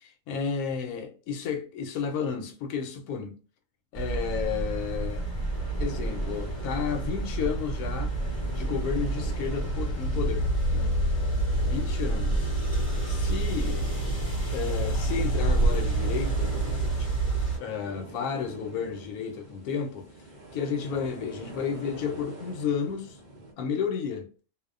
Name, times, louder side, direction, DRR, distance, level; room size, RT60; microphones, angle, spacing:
voice 1, 0.3-3.4 3.9-5.3 5.8-8.1 8.5-11.0 11.6-12.5 13.0-13.8 14.5-16.6 17.0-17.1 17.6-20.1 20.5-23.2 23.6-24.3, left 6 dB, 85° left, 1.1 m, -32 dB
sound 1, 3.9-17.6, right 2 dB, 25° left, 1.1 m, -28 dB
sound 2, 5.1-23.5, right 2 dB, 50° right, 0.5 m, -45 dB
2.6 x 2.1 x 2.3 m
omnidirectional pair, 1.5 m